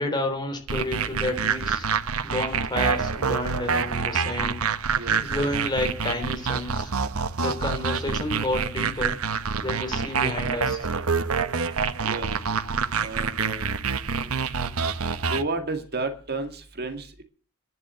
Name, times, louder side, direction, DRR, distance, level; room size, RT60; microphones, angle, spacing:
voice 1, 0.0-1.9 2.2-4.6 5.2-6.9 7.4-9.2 9.6-10.9, left 1 dB, 20° left, 4 dB, 3.4 m, -30 dB
sound 1, 0.7-15.4, right 5 dB, 70° right, 0.9 m, -27 dB
voice 2, 4.9-5.4 12.0-12.3 13.0-13.6 15.3-17.2, right 3 dB, 45° right, 6 dB, 2.0 m, -32 dB
11.5 x 11.0 x 7.6 m, 0.42 s
head